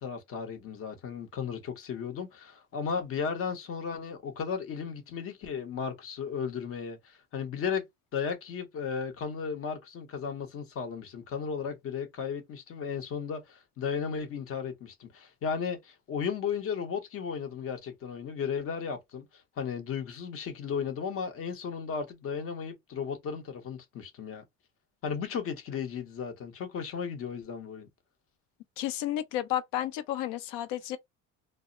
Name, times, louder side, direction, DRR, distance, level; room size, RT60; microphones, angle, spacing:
voice 1, 0.0-7.8 8.1-24.4 25.0-27.9, left 6 dB, 45° left, 0.8 m, -35 dB
voice 2, 28.8-31.0, left 12 dB, 90° left, 0.6 m, -32 dB
2.0 x 2.0 x 3.7 m
cardioid pair, 150°, 33 cm